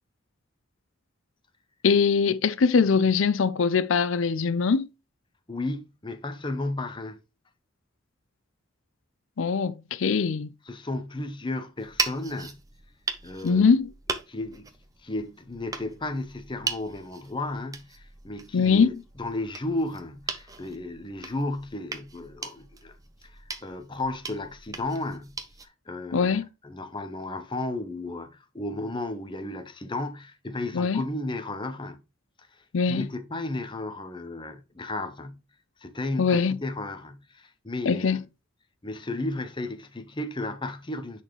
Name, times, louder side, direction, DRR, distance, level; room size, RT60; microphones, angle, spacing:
voice 1, 1.8-4.9 9.4-10.5 13.4-13.9 18.5-18.9 26.1-26.4 30.7-31.0 32.7-33.1 36.2-36.6 37.9-38.2, left 5 dB, 75° left, 0.5 m, -22 dB
voice 2, 5.5-7.2 10.6-12.6 13.2-13.7 14.3-14.7 15.0-23.0 23.2-25.4 25.9-32.0 32.4-35.4 35.8-38.2 38.8-41.2, left 2 dB, 25° left, 0.8 m, -34 dB
sound 1, 11.8-25.7, right 4 dB, 15° right, 0.7 m, -38 dB
9.9 x 4.2 x 3.1 m
head